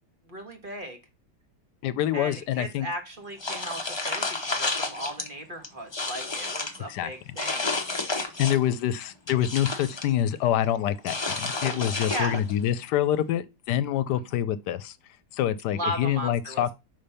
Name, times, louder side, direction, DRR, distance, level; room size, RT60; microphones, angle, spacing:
voice 1, 0.3-1.0 2.1-7.7 12.1-12.4 15.7-16.7, right 1 dB, 35° right, 1.3 m, -36 dB
voice 2, 1.8-2.9 6.9-7.1 8.4-14.9 15.3-16.7, left 11 dB, 80° left, 1.2 m, -26 dB
sound 1, 3.4-5.3 5.6-6.8 7.4-8.7 9.1-10.1 11.0-12.6, left 3 dB, 25° left, 0.7 m, -31 dB
5.7 x 5.2 x 5.5 m
omnidirectional pair, 1.8 m